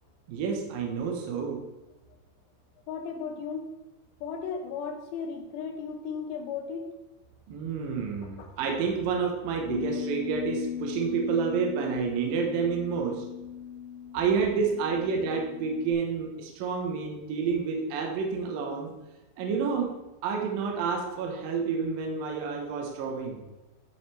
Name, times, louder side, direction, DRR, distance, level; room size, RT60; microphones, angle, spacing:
voice 1, 0.3-1.7 7.5-13.2 14.1-18.9 19.4-23.4, right 5 dB, 70° right, 1 dB, 2.2 m, -29 dB
voice 2, 2.9-3.7 4.2-6.9 8.4-8.5, left 6 dB, 75° left, 4 dB, 2.9 m, -35 dB
Bass guitar, 9.7-15.9, left 9 dB, 60° left, 2.6 m, -38 dB
12.0 x 6.5 x 3.3 m, 1.1 s
omnidirectional pair, 5.5 m